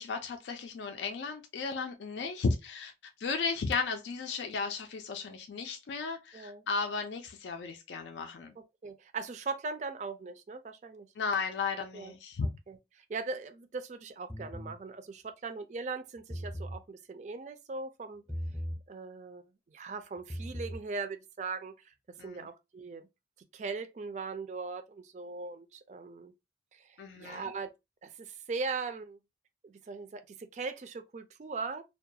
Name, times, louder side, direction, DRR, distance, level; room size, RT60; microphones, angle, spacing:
voice 1, 0.0-2.9 3.2-8.5 11.2-12.5 22.2-22.4 27.0-27.5, left 4 dB, 85° left, 0.4 m, -34 dB
voice 2, 6.3-6.7 8.6-11.1 11.9-12.1 12.4-18.2 18.9-21.9 22.2-23.1 23.5-26.3 26.7-27.7 28.0-29.2 29.6-31.8, right 4 dB, 40° right, 0.3 m, -40 dB
sound 1, 14.3-14.8 16.2-16.8 18.3-18.8 20.2-20.8, equal, 15° left, 0.6 m, -38 dB
2.3 x 2.2 x 2.6 m
head